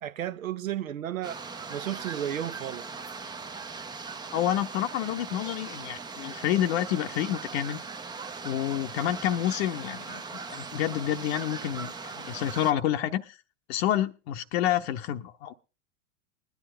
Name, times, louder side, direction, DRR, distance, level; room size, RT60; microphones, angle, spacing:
voice 1, 0.0-1.4 1.7-2.8, right 11 dB, 80° right, 0.9 m, -33 dB
sound 1, 1.2-12.7, right 4 dB, 10° right, 0.6 m, -40 dB
voice 2, 4.3-7.8 8.4-13.4 13.7-15.5, left 11 dB, 50° left, 0.9 m, -29 dB
20.5 x 10.5 x 3.3 m
hypercardioid pair, 100°, 40 cm